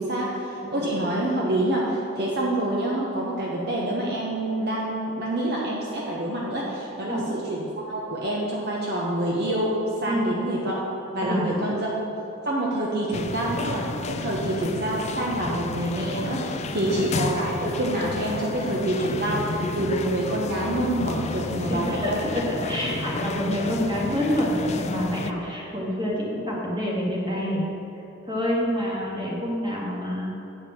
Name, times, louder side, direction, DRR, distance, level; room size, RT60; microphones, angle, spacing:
voice 1, 0.0-9.7 10.0-10.8 11.1-11.9 12.4-22.2, right 1 dB, 50° right, -4 dB, 1.0 m, -27 dB
voice 2, 10.1-10.4 11.2-11.8 16.8-17.0 21.6-27.6 28.3-30.3, equal, 20° right, -4 dB, 1.9 m, -27 dB
sound 1, 13.1-25.3, left 3 dB, 30° left, 0.3 m, -32 dB
8.7 x 4.9 x 7.1 m, 3.0 s
head